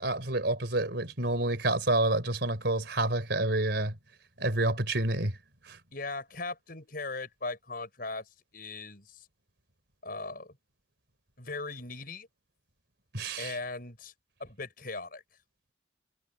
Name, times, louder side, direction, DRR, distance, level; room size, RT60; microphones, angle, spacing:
voice 1, 0.0-4.0 4.4-5.4 5.7-5.8 13.1-13.6, right 2 dB, 60° right, 4.2 m, -28 dB
voice 2, 5.9-8.3 8.5-9.3 10.0-10.6 11.4-12.3 13.4-14.1 14.4-15.2, left 3 dB, 50° left, 5.9 m, -38 dB
head